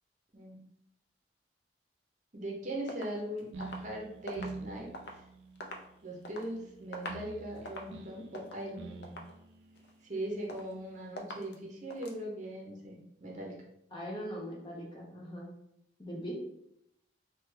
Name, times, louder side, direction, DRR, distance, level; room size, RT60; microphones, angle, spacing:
voice 1, 2.3-5.2 6.0-9.2 10.0-13.6, right 1 dB, 40° right, -2 dB, 0.7 m, -40 dB
sound 1, 2.9-5.2 5.5-6.5 6.8-7.3 7.6-8.0 8.3-8.7 9.0-9.4 9.8-10.2 10.5-10.8 11.2-11.6 11.9-12.2, equal, 65° left, 0.5 m, -45 dB
sound 2, 3.5-11.0, right 3 dB, 85° right, 0.3 m, -48 dB
voice 2, 13.9-15.5 16.0-16.4, equal, 25° left, -3 dB, 0.8 m, -40 dB
3.3 x 2.2 x 3.2 m, 0.75 s
head